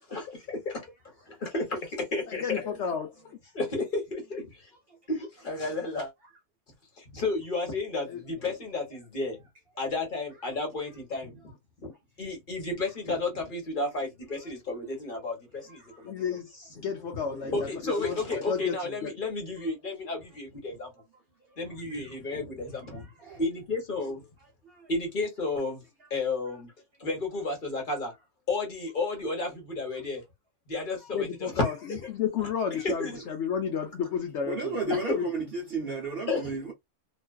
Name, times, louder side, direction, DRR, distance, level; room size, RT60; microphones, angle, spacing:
voice 1, 0.1-0.9 1.3-2.7 3.5-4.7 5.1-6.1 7.0-9.4 9.8-11.5 12.2-16.2 16.8-16.9 17.4-20.9 21.6-23.1 23.4-24.3 24.9-25.8 26.1-26.7 27.0-28.1 28.5-30.2 30.7-32.1 33.0-33.2 34.9-35.2 36.3-36.5, left 3 dB, 40° left, 1.0 m, -32 dB
voice 2, 2.3-3.5 8.1-8.2 16.0-19.1 31.1-35.3, left 7 dB, 65° left, 0.7 m, -32 dB
voice 3, 15.7-16.1 22.3-22.4 23.2-23.4 24.6-24.9 34.5-36.7, right 3 dB, 55° right, 0.7 m, -33 dB
2.5 x 2.3 x 2.2 m
omnidirectional pair, 1.5 m